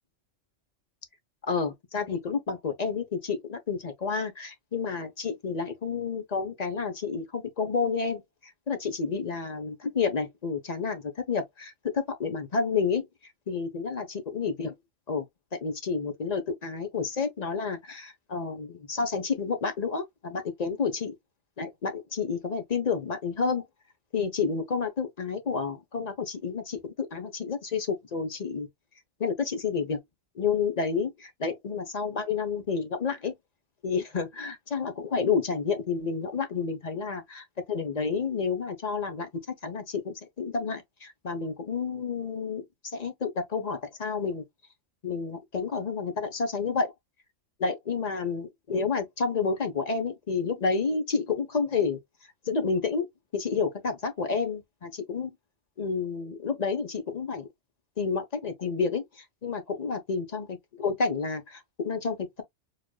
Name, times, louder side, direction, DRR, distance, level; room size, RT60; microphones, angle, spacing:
voice 1, 1.5-8.2 8.7-13.1 13.5-14.7 15.1-15.3 15.6-21.1 21.6-23.6 24.1-28.7 29.2-30.0 30.4-33.3 33.8-39.3 39.6-42.6 42.9-44.4 45.0-46.9 47.6-52.0 52.5-53.1 53.3-55.3 55.8-57.5 58.0-62.4, left 5 dB, 35° left, 0.9 m, -30 dB
5.0 x 2.5 x 2.2 m
omnidirectional pair, 1.3 m